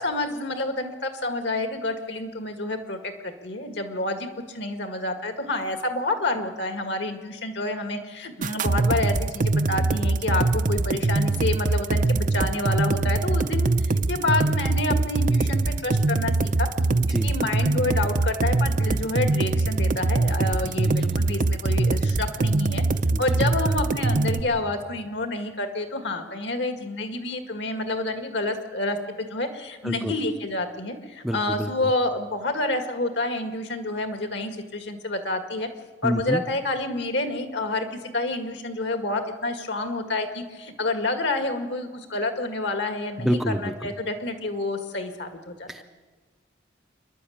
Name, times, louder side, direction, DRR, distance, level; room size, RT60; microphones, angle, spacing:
voice 1, 0.0-16.7 17.1-22.8 23.2-35.7 36.0-45.7, left 2 dB, 60° left, 7 dB, 1.9 m, -28 dB
sound 1, 8.4-24.4, right 2 dB, 40° right, 0.6 m, -23 dB
voice 2, 20.6-21.2 23.1-23.2 29.8-30.1 31.2-31.9 36.0-36.4 43.2-43.9 45.7-45.8, equal, ahead, 6 dB, 0.6 m, -28 dB
28.0 x 11.0 x 8.7 m, 1.4 s
head